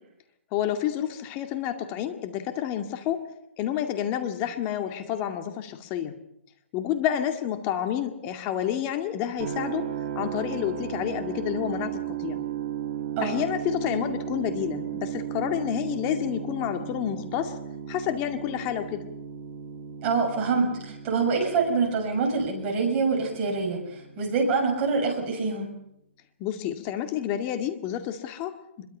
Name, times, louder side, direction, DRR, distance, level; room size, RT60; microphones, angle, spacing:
voice 1, 0.5-3.2 3.6-6.1 6.7-9.9 10.2-12.4 13.2-17.6 17.9-19.0 26.4-28.8, left 10 dB, 25° left, 6 dB, 2.2 m, -29 dB
sound 1, 9.4-25.3, right 10 dB, 40° right, 2.4 m, -36 dB
voice 2, 20.0-25.7, right 4 dB, 25° right, 0 dB, 6.8 m, -25 dB
24.5 x 22.5 x 5.6 m, 0.80 s
hypercardioid pair, 150°, 7 cm